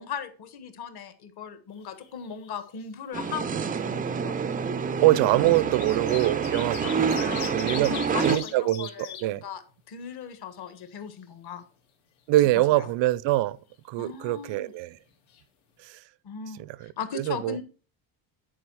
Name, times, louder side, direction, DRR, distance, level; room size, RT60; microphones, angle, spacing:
voice 1, 0.0-4.4 6.8-9.6 9.9-11.6 12.7-12.9 14.0-14.7 16.2-17.6, left 7 dB, 55° left, 1.4 m, -38 dB
sound 1, 1.8-2.5 2.8-2.9 4.0-4.1 5.0-9.2 9.7-9.8 10.1-11.1 15.0-15.1 15.3-15.4, left 8 dB, 90° left, 2.3 m, -40 dB
sound 2, 3.1-8.4, right 6 dB, 20° right, 0.3 m, -28 dB
voice 2, 5.0-7.9 8.2-9.4 12.3-13.6 13.9-15.0 15.8-16.0 16.8-17.6, right 16 dB, 70° right, 0.6 m, -24 dB
10.0 x 4.8 x 4.6 m
cardioid pair, 140°, 46 cm